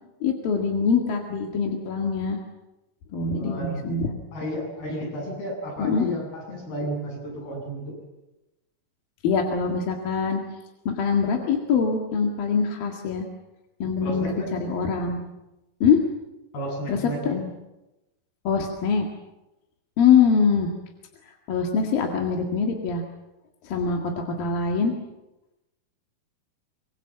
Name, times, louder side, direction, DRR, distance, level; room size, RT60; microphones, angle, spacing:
voice 1, 0.2-2.4 3.1-4.1 5.8-6.1 9.2-10.4 10.9-13.3 13.8-15.2 15.8-16.0 16.9-17.0 17.2-17.4 18.5-19.1 20.0-20.7 21.5-23.0 23.6-24.9, left 6 dB, 70° left, 1 dB, 3.8 m, -23 dB
voice 2, 3.3-3.9 4.3-7.9 14.0-14.5 16.5-17.5, equal, 85° left, -1 dB, 9.9 m, -32 dB
25.5 x 23.5 x 7.4 m, 0.99 s
omnidirectional pair, 4.4 m